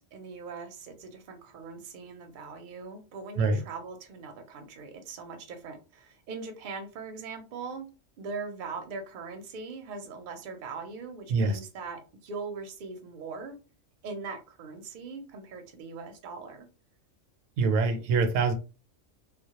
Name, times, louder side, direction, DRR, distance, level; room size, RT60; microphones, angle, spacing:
voice 1, 0.0-7.9 8.2-13.5 14.0-16.7, right 4 dB, 55° right, 0.6 m, -41 dB
voice 2, 11.3-11.6 17.6-18.5, right 4 dB, 80° right, 0.9 m, -24 dB
2.2 x 2.0 x 2.8 m
omnidirectional pair, 1.3 m